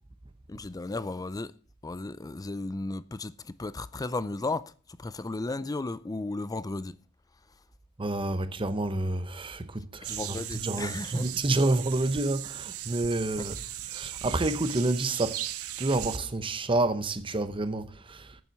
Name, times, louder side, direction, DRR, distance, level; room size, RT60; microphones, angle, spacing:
voice 1, 0.5-1.5 1.8-4.7 5.0-7.0 10.0-11.3 13.4-13.5, left 2 dB, 15° left, 0.4 m, -34 dB
voice 2, 8.0-13.6 13.9-15.4 15.8-18.4, right 2 dB, 25° right, 0.8 m, -29 dB
sound 1, 10.0-16.2, right 12 dB, 80° right, 0.8 m, -38 dB
8.8 x 7.1 x 7.4 m
head